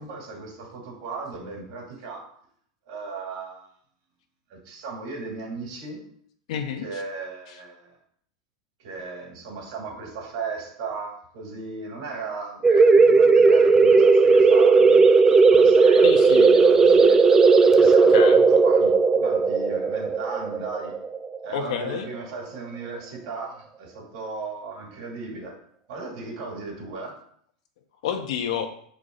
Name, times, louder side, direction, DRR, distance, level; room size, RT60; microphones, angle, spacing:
voice 1, 0.0-2.3 2.9-3.7 4.5-6.0 6.8-7.9 8.8-11.1 11.3-15.0 15.5-17.2 17.7-20.9 21.4-25.6 25.9-27.2, right 4 dB, 60° right, 0 dB, 2.7 m, -36 dB
voice 2, 6.5-7.0 7.5-7.6 16.0-16.5 18.1-18.4 21.5-22.1 28.0-28.7, left 8 dB, 65° left, 6 dB, 1.0 m, -29 dB
sound 1, 12.6-22.0, right 4 dB, 15° right, 0.3 m, -16 dB
6.5 x 4.7 x 4.0 m, 0.63 s
supercardioid pair, 160°, 3 cm